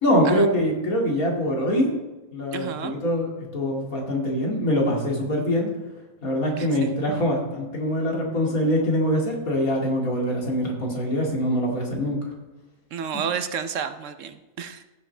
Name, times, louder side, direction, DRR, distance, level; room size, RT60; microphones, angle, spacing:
voice 1, 0.0-1.9 2.3-5.7 6.2-12.2, equal, 80° left, -2 dB, 2.8 m, -24 dB
voice 2, 2.5-2.9 6.6-6.9 12.9-14.8, right 7 dB, 65° right, 10 dB, 1.0 m, -31 dB
15.0 x 7.5 x 3.3 m, 1.1 s
omnidirectional pair, 1.5 m